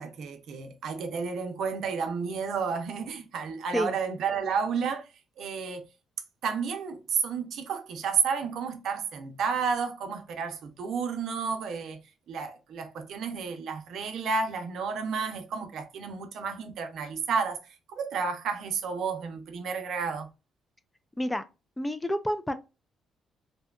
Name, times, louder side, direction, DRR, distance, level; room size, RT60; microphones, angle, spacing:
voice 1, 0.0-5.1 5.4-5.8 6.4-12.0 12.3-17.6 17.9-20.3, right 5 dB, 70° right, 0.5 m, -31 dB
voice 2, 21.8-22.5, equal, 10° left, 0.3 m, -29 dB
2.7 x 2.2 x 2.2 m
cardioid pair, 90°, 0 cm